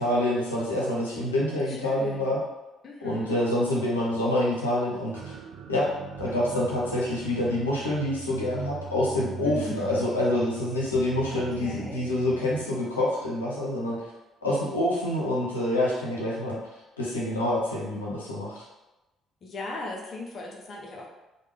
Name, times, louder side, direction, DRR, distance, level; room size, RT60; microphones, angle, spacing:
voice 1, 0.0-2.4 3.0-5.4 5.7-5.9 6.2-14.0 14.4-16.6 17.0-18.6, left 1 dB, 90° left, -5 dB, 0.6 m, -27 dB
voice 2, 1.7-2.3 2.8-3.4 9.4-10.0 11.3-12.0 19.4-21.1, left 2 dB, 45° left, -1 dB, 0.6 m, -38 dB
sound 1, 5.1-12.7, right 7 dB, 60° right, 0.3 m, -41 dB
3.2 x 2.2 x 3.3 m, 1.0 s
hypercardioid pair, 50°, 0 cm